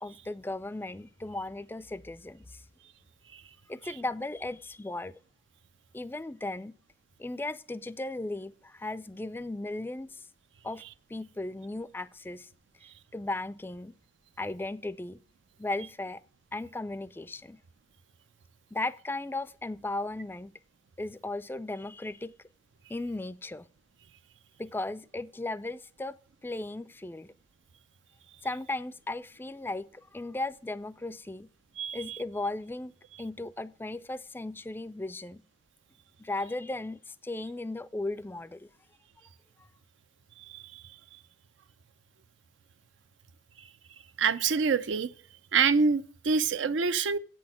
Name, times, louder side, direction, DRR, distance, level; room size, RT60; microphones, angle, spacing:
voice 1, 0.0-2.6 3.7-5.2 5.9-6.7 7.2-10.3 10.6-10.8 11.1-12.5 13.1-14.0 14.4-15.2 15.6-16.2 16.5-17.6 18.7-20.6 21.0-22.3 22.9-23.7 24.6-26.2 26.4-27.3 28.4-31.5 31.9-35.4 36.2-38.7 39.6-39.7, left 2 dB, 10° left, 0.3 m, -36 dB
voice 2, 31.8-32.2 40.5-40.8 44.2-45.1 45.5-47.2, right 5 dB, 85° right, 0.6 m, -26 dB
8.3 x 6.2 x 7.4 m
head